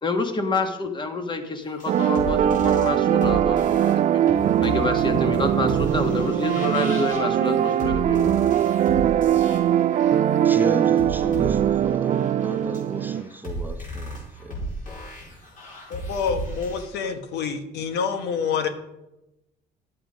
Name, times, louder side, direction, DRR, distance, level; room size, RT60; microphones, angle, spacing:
voice 1, 0.0-4.3 4.6-8.3, left 3 dB, 25° left, 1.6 m, -27 dB
sound 1, 1.7-16.8, equal, 50° left, 4.4 m, -35 dB
sound 2, 1.9-13.2, right 10 dB, 45° right, 0.4 m, -21 dB
voice 2, 10.4-14.6, right 3 dB, 10° right, 0.9 m, -33 dB
voice 3, 15.9-18.7, left 6 dB, 80° left, 1.3 m, -27 dB
11.5 x 7.8 x 5.2 m
cardioid pair, 110°, 17 cm